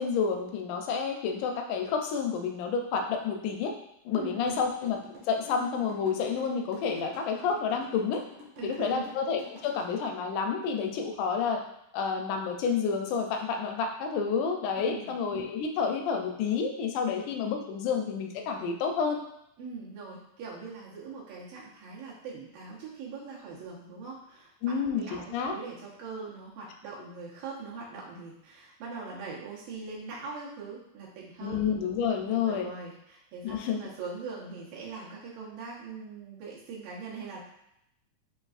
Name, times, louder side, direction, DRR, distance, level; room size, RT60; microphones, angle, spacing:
voice 1, 0.0-3.7 4.1-5.0 5.3-8.2 8.6-11.6 11.9-19.2 24.6-25.6 31.4-32.7 33.4-33.8, left 6 dB, 80° left, 4 dB, 1.9 m, -29 dB
voice 2, 4.1-4.6 8.6-9.1 14.8-15.1 19.6-31.6 32.4-37.4, right 4 dB, 90° right, -6 dB, 2.8 m, -41 dB
sound 1, 4.5-9.8, equal, 75° right, 2.2 m, -49 dB
5.9 x 2.5 x 2.4 m, 0.79 s
omnidirectional pair, 3.8 m